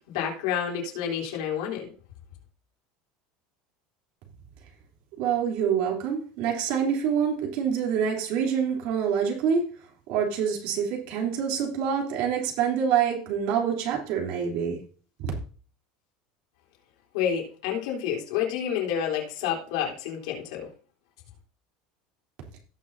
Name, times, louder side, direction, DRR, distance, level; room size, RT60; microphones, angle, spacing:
voice 1, 0.1-1.9 17.1-20.7, left 8 dB, 90° left, -1 dB, 3.6 m, -29 dB
voice 2, 5.2-9.6 10.1-14.8 15.2-15.3, right 7 dB, 60° right, 0 dB, 3.3 m, -26 dB
17.5 x 5.9 x 2.7 m, 0.40 s
cardioid pair, 165°, 3 cm